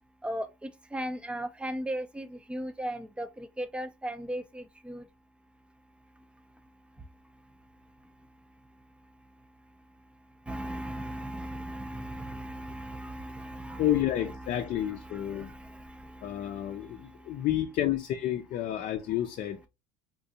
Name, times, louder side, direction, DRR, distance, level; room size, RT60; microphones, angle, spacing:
voice 1, 0.2-5.0 10.5-17.4, right 1 dB, 5° right, 0.5 m, -38 dB
voice 2, 13.8-15.5 16.2-19.7, left 12 dB, 50° left, 0.5 m, -30 dB
3.7 x 2.3 x 2.7 m
supercardioid pair, 115°, 17 cm